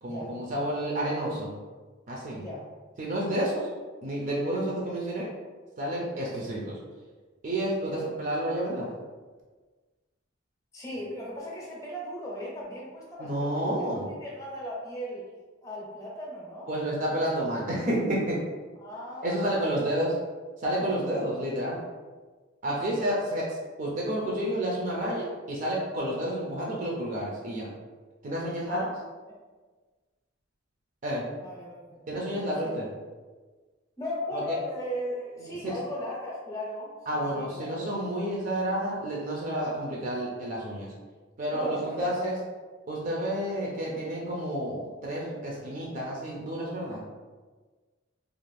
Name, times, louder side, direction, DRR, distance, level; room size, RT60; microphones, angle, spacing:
voice 1, 0.0-1.5 2.1-2.4 3.0-3.7 4.0-5.3 5.8-6.8 7.4-8.9 13.2-14.1 16.7-18.4 19.2-20.1 20.6-21.8 22.6-27.7 28.2-28.8 31.0-31.2 32.1-32.9 34.3-34.4 35.4-35.7 37.1-40.9 41.4-42.4 42.9-47.0, right 1 dB, 40° right, -3 dB, 0.4 m, -30 dB
voice 2, 10.7-13.5 13.8-15.2 15.6-16.7 18.8-19.8 22.6-23.1 26.2-26.3 28.6-28.9 31.4-32.1 32.6-32.7 34.0-37.9 41.5-42.3, left 1 dB, 15° left, -4 dB, 0.6 m, -37 dB
2.4 x 2.4 x 3.2 m, 1.4 s
head